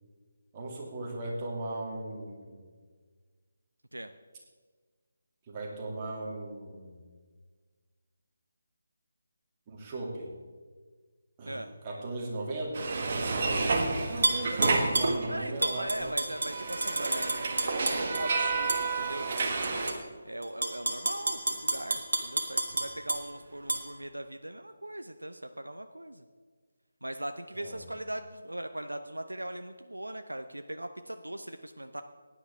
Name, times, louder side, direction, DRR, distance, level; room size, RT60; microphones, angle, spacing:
voice 1, 0.5-2.6 5.5-7.0 9.7-10.3 11.4-12.8 14.0-16.1 27.5-27.8, right 2 dB, 25° right, -3 dB, 2.6 m, -37 dB
sound 1, 12.7-15.6 15.8-19.9, right 3 dB, 40° right, 1.5 m, -30 dB
Tap / Glass, 14.2-15.2 15.6-18.2 18.7-18.8 19.4-19.9 20.4-23.2 23.7-23.8, right 2 dB, 60° right, 1.9 m, -29 dB
voice 2, 15.3-19.9 20.2-26.2 27.0-32.0, right 1 dB, 80° right, 8 dB, 0.6 m, -39 dB
16.0 x 10.0 x 3.6 m, 1.5 s
figure-of-eight pair, 150°, 0 cm